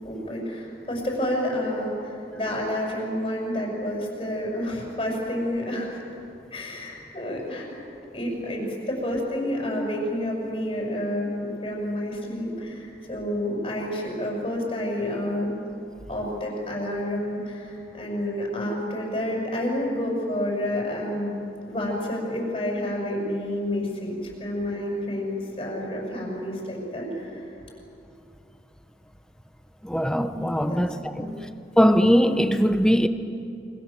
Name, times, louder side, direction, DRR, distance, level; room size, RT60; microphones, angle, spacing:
voice 1, 0.0-6.0 6.5-7.7 8.1-15.6 16.1-21.3 21.6-27.5 30.7-30.8 31.1-31.4, left 1 dB, 35° left, 7.7 m, -29 dB
voice 2, 29.8-31.3 31.8-33.1, equal, 5° left, 1.0 m, -20 dB
29.0 x 25.5 x 7.7 m
head